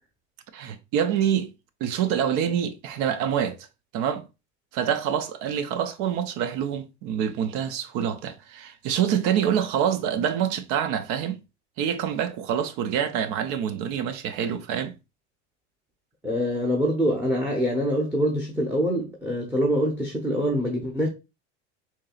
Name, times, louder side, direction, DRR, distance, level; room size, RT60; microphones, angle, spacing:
voice 1, 0.5-1.5 1.8-3.7 3.9-4.3 4.7-11.4 11.8-14.9, right 9 dB, 60° right, 0.7 m, -26 dB
voice 2, 16.2-21.1, equal, 5° right, 0.8 m, -25 dB
4.7 x 2.8 x 2.3 m
supercardioid pair, 100°, 33 cm